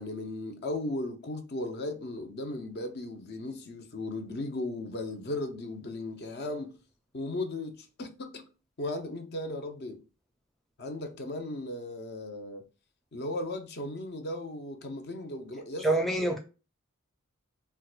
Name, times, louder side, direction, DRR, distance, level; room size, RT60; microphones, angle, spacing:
voice 1, 0.0-6.8 7.1-8.4 8.8-10.0 10.8-12.6 13.1-15.9, left 2 dB, 50° left, 0.6 m, -36 dB
voice 2, 15.8-16.4, right 2 dB, ahead, 0.4 m, -26 dB
4.5 x 2.2 x 2.3 m
head